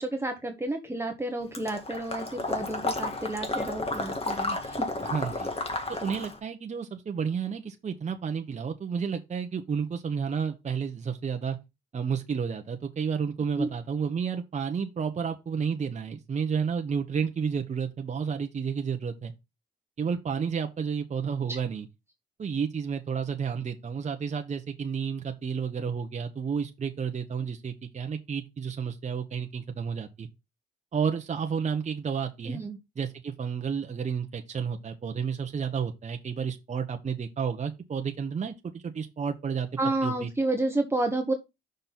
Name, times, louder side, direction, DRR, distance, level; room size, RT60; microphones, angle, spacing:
voice 1, 0.0-4.9 13.6-13.7 21.5-21.6 32.5-32.8 39.8-41.3, right 2 dB, 10° right, 1.2 m, -30 dB
Water / Liquid, 1.5-6.4, left 2 dB, 30° left, 1.9 m, -32 dB
voice 2, 5.1-5.5 5.9-11.6 11.9-19.3 20.0-21.8 22.4-30.3 30.9-32.6 33.0-39.7 40.0-40.3, right 6 dB, 35° right, 1.0 m, -31 dB
6.1 x 5.3 x 4.1 m
cardioid pair, 90°, 20 cm